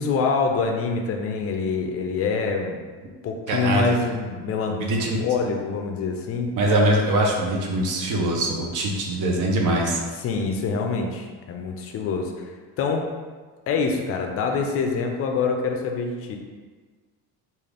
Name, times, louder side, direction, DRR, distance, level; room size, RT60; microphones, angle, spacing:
voice 1, 0.0-2.8 3.2-4.8 5.2-6.5 10.2-12.5 12.8-13.0 13.7-16.4, left 4 dB, 40° left, 3 dB, 0.4 m, -25 dB
voice 2, 3.5-3.9 4.7-5.2 6.5-10.0, right 1 dB, 55° right, 0 dB, 0.7 m, -22 dB
3.7 x 2.5 x 3.3 m, 1.4 s
cardioid pair, 160°, 38 cm